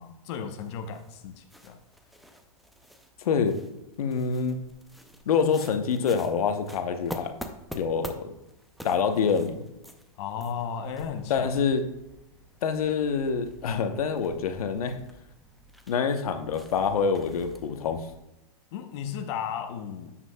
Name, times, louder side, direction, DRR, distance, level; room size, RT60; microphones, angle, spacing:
voice 1, 0.0-1.8 10.2-11.5 18.7-20.2, left 7 dB, 45° left, 7 dB, 0.8 m, -35 dB
sound 1, 0.6-18.2, equal, ahead, 0.4 m, -47 dB
voice 2, 3.2-3.6 4.0-4.6 5.3-7.3 7.7-8.3 8.8-9.6 11.3-11.8 12.6-15.0 15.9-18.1, left 6 dB, 80° left, 7 dB, 0.9 m, -26 dB
9.8 x 7.5 x 2.2 m, 0.94 s
hypercardioid pair, 140°, 19 cm